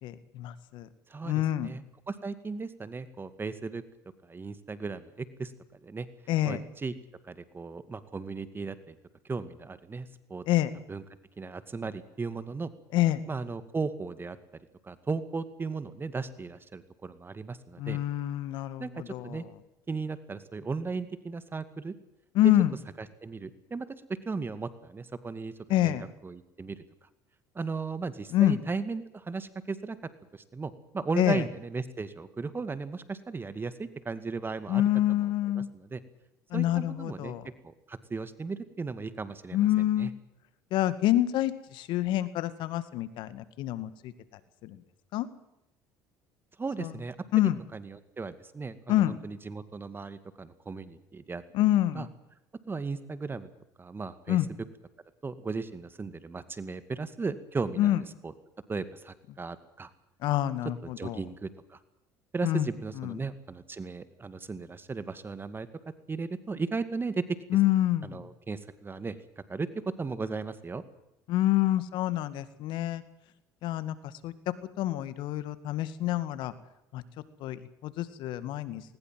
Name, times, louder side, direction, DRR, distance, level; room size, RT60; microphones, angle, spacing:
voice 1, 0.0-0.9 1.2-1.7 6.3-6.6 10.5-10.7 12.9-13.2 17.8-19.4 22.3-22.8 25.7-26.0 28.3-28.6 31.2-31.4 34.7-35.7 36.5-37.5 39.5-40.1 40.7-44.1 44.6-44.8 45.1-45.3 46.8-46.9 47.3-47.6 48.9-49.2 51.5-52.1 54.3-54.5 57.8-58.0 60.2-61.2 62.4-62.7 63.0-63.2 67.5-68.3 71.3-73.0 73.6-74.0 74.2-76.5 76.9-77.0 77.4-78.8, left 14 dB, 70° left, 14 dB, 2.0 m, -27 dB
voice 2, 1.1-3.8 4.2-6.1 6.5-6.9 7.2-9.0 9.3-10.4 10.9-11.0 11.4-12.7 13.3-18.0 18.8-19.5 19.9-21.9 22.4-22.5 23.2-23.9 24.3-25.5 25.8-26.8 27.5-30.0 30.3-34.8 35.1-35.2 35.5-36.0 36.5-37.4 37.6-39.6 40.0-40.1 46.6-47.2 47.7-51.4 52.0-52.1 52.7-53.5 53.8-54.4 55.2-57.9 58.2-58.3 58.7-59.9 60.8-61.8 62.3-65.7 66.1-67.2 68.0-69.2 69.5-70.8, right 4 dB, 25° right, 12 dB, 2.2 m, -36 dB
20.5 x 20.0 x 7.7 m, 0.85 s
supercardioid pair, 75°, 9 cm